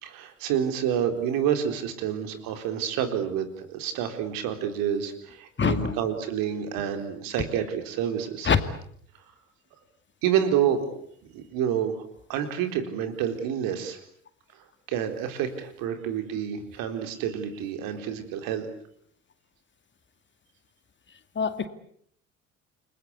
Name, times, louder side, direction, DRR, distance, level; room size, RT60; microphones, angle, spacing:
voice 1, 0.0-8.5 10.2-10.8 11.3-12.0 12.3-14.0 14.9-18.7, right 9 dB, 60° right, 8 dB, 4.1 m, -28 dB
voice 2, 5.6-5.9 8.4-8.6 21.4-21.7, left 6 dB, 30° left, 11 dB, 2.3 m, -23 dB
29.5 x 21.5 x 8.4 m, 0.67 s
figure-of-eight pair, 55°, 39 cm